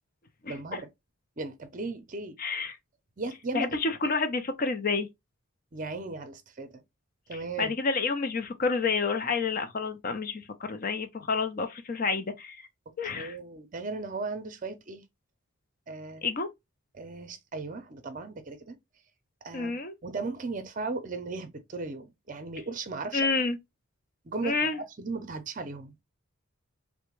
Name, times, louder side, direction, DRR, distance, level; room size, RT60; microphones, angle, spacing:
voice 1, 0.5-0.9 1.4-2.4 3.2-3.7 5.7-6.7 7.3-7.7 13.1-15.0 15.9-16.3 16.9-18.8 19.4-23.3 24.2-24.6 25.0-26.0, right 3 dB, 35° right, 0.6 m, -36 dB
voice 2, 2.4-2.8 3.5-5.1 7.3-12.7 13.0-13.4 16.2-16.5 19.5-19.9 23.1-23.6 24.4-24.8, left 4 dB, 40° left, 0.4 m, -29 dB
3.3 x 2.1 x 3.0 m
head